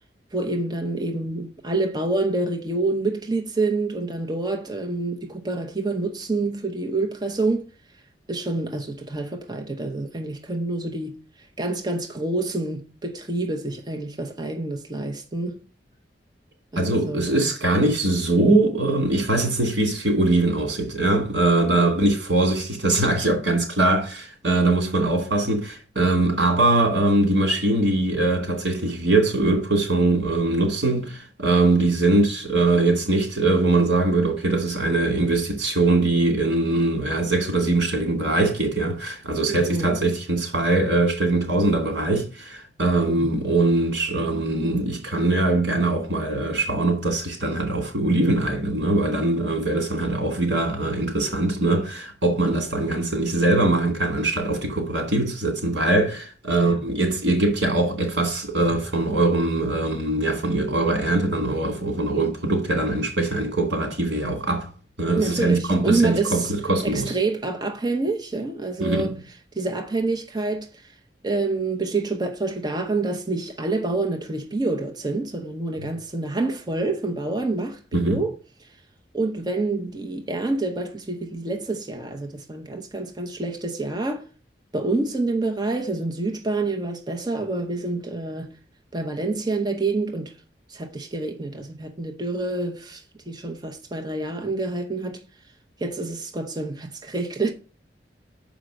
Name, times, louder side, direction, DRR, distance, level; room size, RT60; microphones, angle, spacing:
voice 1, 0.3-7.7 8.3-11.2 11.6-15.6 16.7-17.5 21.8-21.9 39.5-40.0 43.1-43.4 56.5-56.8 65.2-66.5 66.8-69.1 69.5-70.8 71.2-78.3 79.1-84.2 84.7-88.5 88.9-90.3 90.7-95.2 95.8-97.5, right 3 dB, 25° right, 0.8 m, -27 dB
voice 2, 16.8-64.7 65.0-67.1 68.8-69.1 77.9-78.2, right 2 dB, 90° right, 2.6 m, -22 dB
6.4 x 5.1 x 6.4 m
head